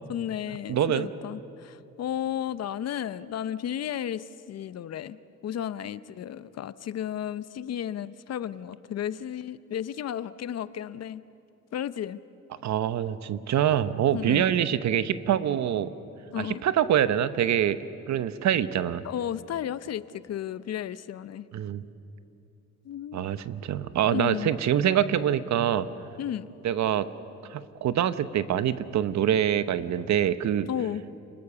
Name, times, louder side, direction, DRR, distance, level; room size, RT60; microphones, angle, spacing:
voice 1, 0.1-5.2 5.4-11.2 11.7-12.2 14.1-14.4 16.3-16.6 19.0-21.5 22.8-23.2 24.1-24.5 26.2-26.5 30.7-31.0, left 10 dB, 55° left, 16 dB, 0.7 m, -33 dB
voice 2, 0.7-1.1 12.6-15.9 16.4-17.8 18.1-19.0 21.5-21.9 23.1-25.9 26.6-27.1 27.5-30.7, right 10 dB, 65° right, 14 dB, 1.0 m, -25 dB
30.0 x 20.5 x 6.8 m, 2.9 s
cardioid pair, 90°, 30 cm